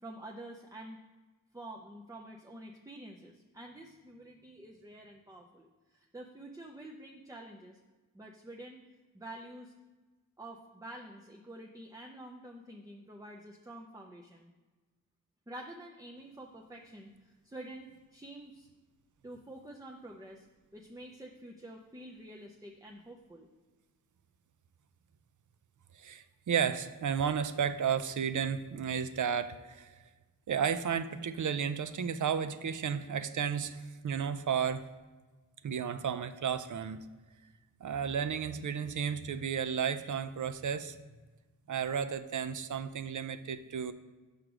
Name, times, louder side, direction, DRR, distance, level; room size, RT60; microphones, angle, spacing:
voice 1, 0.0-1.0 1.5-7.8 8.1-8.8 9.1-9.7 10.4-14.5 15.5-18.7 19.2-20.5 20.7-23.5, right 1 dB, 10° right, 0 dB, 0.5 m, -48 dB
voice 2, 25.9-30.0 30.5-34.9 35.6-37.1 37.8-41.0 41.7-43.9, right 7 dB, 60° right, 11 dB, 0.5 m, -33 dB
6.5 x 5.0 x 6.0 m, 1.3 s
wide cardioid pair, 95°, 34 cm